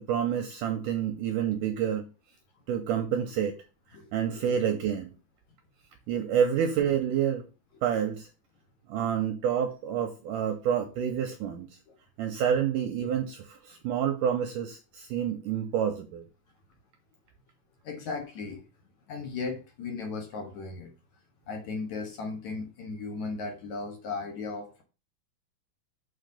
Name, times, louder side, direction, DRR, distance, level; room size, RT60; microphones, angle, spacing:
voice 1, 0.0-2.1 2.7-3.6 4.1-5.1 6.1-7.4 7.8-8.3 8.9-11.7 12.2-16.2, right 8 dB, 75° right, 6 dB, 1.9 m, -28 dB
voice 2, 17.8-18.7 19.1-20.9 21.5-24.8, left 4 dB, 55° left, 3 dB, 2.5 m, -36 dB
7.4 x 4.5 x 6.6 m, 0.31 s
omnidirectional pair, 4.5 m